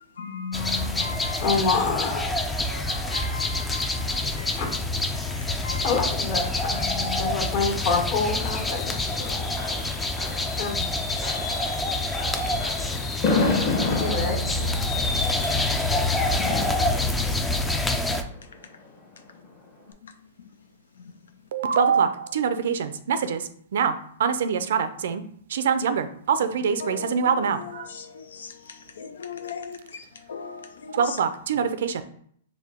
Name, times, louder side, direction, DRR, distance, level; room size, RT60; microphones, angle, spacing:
voice 1, 0.2-1.6 2.4-4.8 5.1-6.0 6.6-7.4 20.0-20.1 26.8-27.2 27.6-31.0, left 5 dB, 85° left, 0.3 m, -37 dB
sound 1, 0.5-18.2, left 2 dB, 10° left, 0.3 m, -27 dB
voice 2, 1.4-2.2 4.6-4.7 5.4-9.0 10.6-10.8 14.0-14.4, left 4 dB, 55° left, 1.5 m, -27 dB
Fireworks, 7.1-18.8 19.2-19.5 19.7-19.8, left 3 dB, 35° left, 1.1 m, -31 dB
voice 3, 21.5-25.2 25.5-27.9 30.9-32.0, right 6 dB, 70° right, 0.4 m, -24 dB
4.6 x 2.2 x 3.6 m
hypercardioid pair, 145°, 0 cm